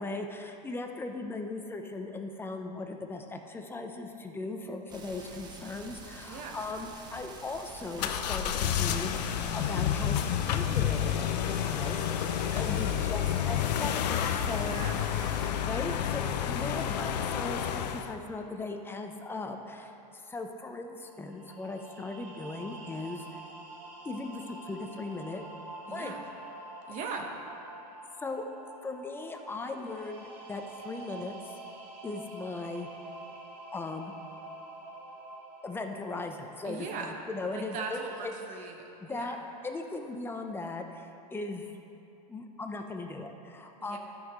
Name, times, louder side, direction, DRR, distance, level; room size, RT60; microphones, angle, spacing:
voice 1, 0.0-14.7 15.6-23.4 24.0-25.4 25.9-26.1 28.2-28.5 28.8-31.5 32.0-32.9 33.7-34.1 35.6-38.3 39.0-39.4 39.6-41.8 42.3-44.0, left 3 dB, 10° left, 4 dB, 0.5 m, -38 dB
sound 1, 4.9-15.5, right 3 dB, 20° right, 0.9 m, -47 dB
voice 2, 6.2-6.6 12.3-12.7 14.6-15.0 25.9-26.2 26.9-27.3 36.6-37.1 37.5-39.4 43.8-44.0, right 5 dB, 35° right, 2 dB, 1.2 m, -40 dB
sound 2, 8.0-18.1, left 9 dB, 75° left, 0.6 m, -30 dB
sound 3, 21.0-38.3, right 2 dB, 80° right, 1.4 m, -47 dB
12.5 x 5.7 x 3.6 m, 2.8 s
hypercardioid pair, 125°, 21 cm